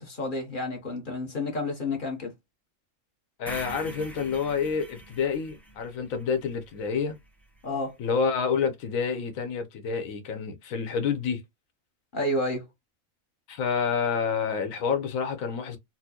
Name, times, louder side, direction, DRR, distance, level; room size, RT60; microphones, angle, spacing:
voice 1, 0.0-2.3 7.6-8.0 12.1-12.7, left 1 dB, 45° left, 1.0 m, -30 dB
voice 2, 3.4-7.2 8.0-11.4 13.5-15.8, left 6 dB, 85° left, 1.2 m, -28 dB
sound 1, 3.5-7.6, right 1 dB, ahead, 0.4 m, -44 dB
4.2 x 2.1 x 2.7 m
omnidirectional pair, 1.4 m